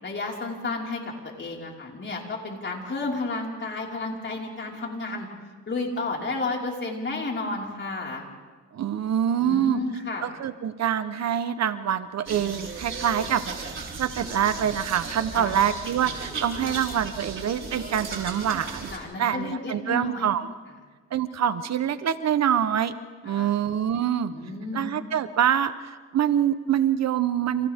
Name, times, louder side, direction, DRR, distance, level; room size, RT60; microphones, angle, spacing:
voice 1, 0.0-1.0 1.4-5.3 5.7-8.3 9.4-10.3 15.3-15.6 16.6-17.1 18.9-20.3 23.2-23.5 24.3-24.9, left 3 dB, 40° left, -2 dB, 5.3 m, -32 dB
voice 2, 8.7-9.8 10.2-13.7 14.0-18.9 19.2-20.5 21.1-22.9 23.2-24.3 24.7-27.7, right 9 dB, 60° right, 11 dB, 1.1 m, -25 dB
sound 1, 12.3-19.0, right 4 dB, 40° right, 4.9 m, -36 dB
30.0 x 28.0 x 3.7 m, 1.4 s
cardioid pair, 90°, 30 cm